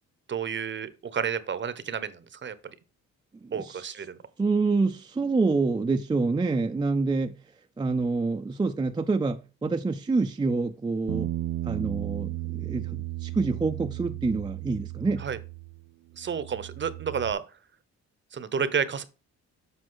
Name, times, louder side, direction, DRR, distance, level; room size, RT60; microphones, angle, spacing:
voice 1, 0.3-2.5 3.5-4.2 15.2-15.4 16.2-17.4 18.3-19.0, right 7 dB, 40° right, 0.8 m, -30 dB
voice 2, 3.4-3.9 4.4-7.3 7.8-11.3 11.7-15.2, right 3 dB, 15° right, 0.5 m, -27 dB
Bass guitar, 11.1-15.8 16.1-17.3, right 16 dB, 65° right, 0.4 m, -35 dB
7.8 x 5.2 x 3.8 m
cardioid pair, 90°, 30 cm